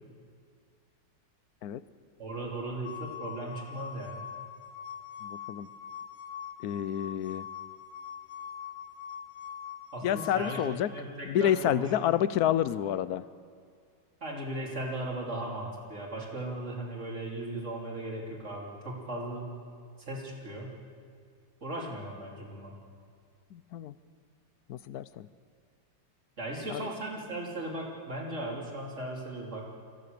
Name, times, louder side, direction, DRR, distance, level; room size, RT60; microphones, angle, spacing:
voice 1, 2.2-4.3 9.9-11.9 14.2-19.5 20.0-20.7 21.6-22.7 26.4-29.7, right 1 dB, 40° right, -2 dB, 3.7 m, -37 dB
sound 1, 2.8-10.6, left 8 dB, 50° left, 2.3 m, -43 dB
voice 2, 5.2-5.7 6.6-7.5 10.0-10.9 11.3-13.2 23.5-23.9 24.7-25.3 26.7-26.8, left 11 dB, 65° left, 15 dB, 1.1 m, -29 dB
26.5 x 16.0 x 6.8 m, 2.2 s
omnidirectional pair, 1.9 m